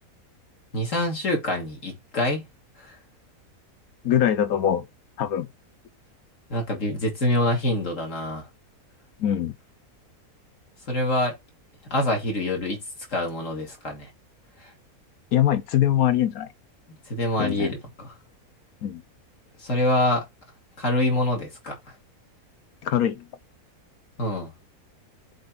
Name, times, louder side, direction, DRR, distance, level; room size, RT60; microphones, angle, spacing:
voice 1, 0.7-2.4 2.8-2.9 6.5-8.5 10.9-11.3 11.9-12.8 13.1-14.1 14.6-14.7 17.1-18.1 19.6-20.3 20.8-21.8 24.2-24.5, left 1 dB, 55° left, 3.1 m, -25 dB
voice 2, 4.0-4.8 5.2-5.5 9.2-9.5 15.3-16.5 17.4-17.7 18.8-19.0 22.8-23.2, left 10 dB, 75° left, 1.4 m, -22 dB
7.8 x 3.8 x 3.8 m
omnidirectional pair, 1.6 m